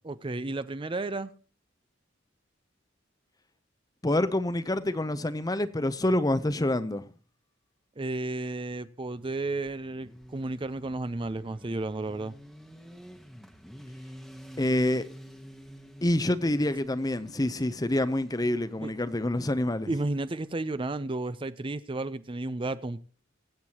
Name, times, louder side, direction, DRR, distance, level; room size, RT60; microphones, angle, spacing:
voice 1, 0.0-1.3 8.0-12.4 18.8-18.9 19.9-23.0, right 2 dB, 25° right, 0.5 m, -32 dB
voice 2, 4.0-7.0 14.6-15.0 16.0-19.9, left 1 dB, 20° left, 0.7 m, -27 dB
Motorcycle, 9.0-20.7, equal, ahead, 1.1 m, -50 dB
23.5 x 8.1 x 2.9 m
head